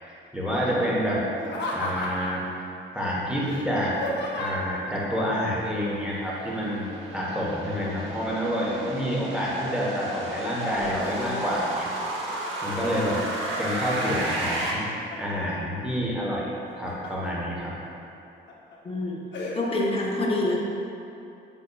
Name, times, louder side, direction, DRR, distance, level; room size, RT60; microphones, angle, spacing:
voice 1, 0.3-1.2 1.7-2.4 2.9-4.0 4.3-11.9 12.6-13.2 13.6-14.8 15.2-17.8, equal, 5° right, -6 dB, 1.0 m, -28 dB
Laughter, 1.4-2.5 3.4-4.8 6.5-7.0 7.3-8.9 9.5-10.1 10.5-11.8 12.2-12.8 13.3-14.1 14.5-15.4 16.5-17.3 17.8-17.9 18.5-18.8 19.3-19.6, left 2 dB, 65° left, 0.7 m, -35 dB
sound 1, 5.1-14.7, right 1 dB, 75° right, 0.8 m, -33 dB
voice 2, 18.8-19.2 19.5-20.6, left 2 dB, 30° left, -2 dB, 0.7 m, -26 dB
5.3 x 3.8 x 2.3 m, 2.7 s
cardioid pair, 90°, 20 cm